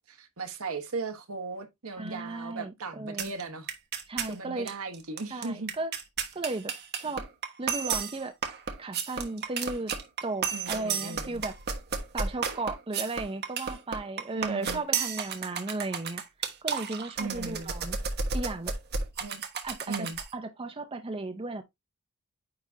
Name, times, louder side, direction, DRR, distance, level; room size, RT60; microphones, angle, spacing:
voice 1, 0.0-3.7 4.3-5.7 10.5-11.4 14.3-14.8 17.2-17.7 19.2-19.4 19.9-20.2, right 3 dB, 75° right, 1.4 m, -37 dB
voice 2, 2.0-3.3 4.1-4.8 5.3-5.9 6.3-7.2 7.6-8.3 8.8-9.9 10.2-11.5 12.1-16.2 16.6-18.0 18.3-18.7 19.6-21.6, right 2 dB, 25° right, 0.6 m, -35 dB
sound 1, 3.2-3.4 3.7-4.3 4.7-4.8 4.9-20.3, right 6 dB, 50° right, 1.2 m, -33 dB
9.5 x 3.7 x 2.7 m
head